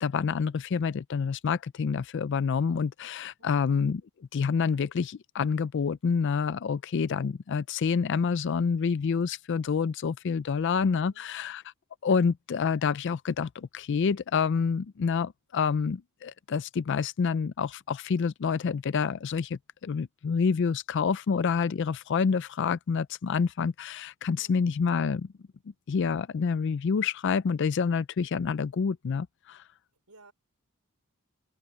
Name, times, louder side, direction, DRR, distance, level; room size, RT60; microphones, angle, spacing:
voice 1, 0.0-4.0 4.3-11.6 12.0-25.3 25.9-29.6, left 5 dB, 55° left, 0.4 m, -28 dB
voice 2, 3.4-3.7 10.5-11.5 24.4-24.7 30.1-30.3, right 3 dB, 85° right, 4.4 m, -59 dB
open air
head